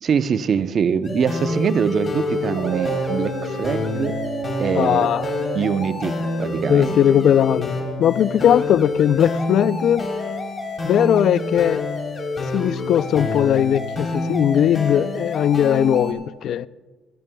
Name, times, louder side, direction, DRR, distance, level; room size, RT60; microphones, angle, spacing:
voice 1, 0.0-4.2 4.6-5.1 5.6-7.0, right 7 dB, 45° right, 0.6 m, -23 dB
sound 1, 1.0-16.1, left 2 dB, 30° left, 3.4 m, -27 dB
Dog, 2.2-8.8, right 6 dB, 85° right, 1.5 m, -33 dB
voice 2, 4.7-5.3 6.7-10.1 10.8-11.8 12.5-16.7, left 10 dB, 60° left, 0.4 m, -19 dB
27.5 x 10.5 x 2.2 m
cardioid pair, 100°, 0 cm